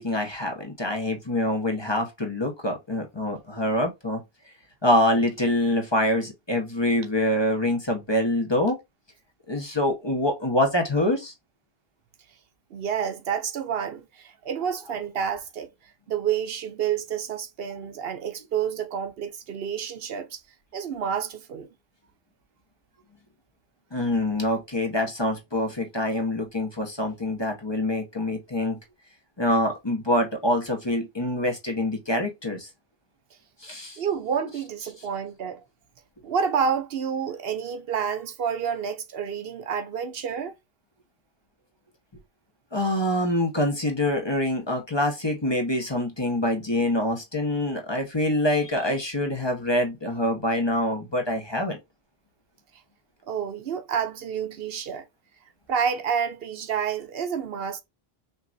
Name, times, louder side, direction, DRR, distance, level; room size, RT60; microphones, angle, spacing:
voice 1, 0.0-4.2 4.8-8.8 9.5-11.3 23.9-28.8 29.4-32.7 33.6-34.0 42.7-51.8, left 1 dB, 25° left, 1.1 m, -25 dB
voice 2, 12.7-15.7 16.1-20.4 20.7-21.7 34.0-35.6 36.2-40.5 53.3-55.0 55.7-57.8, right 7 dB, 70° right, 0.9 m, -29 dB
5.9 x 2.9 x 2.6 m
omnidirectional pair, 1.1 m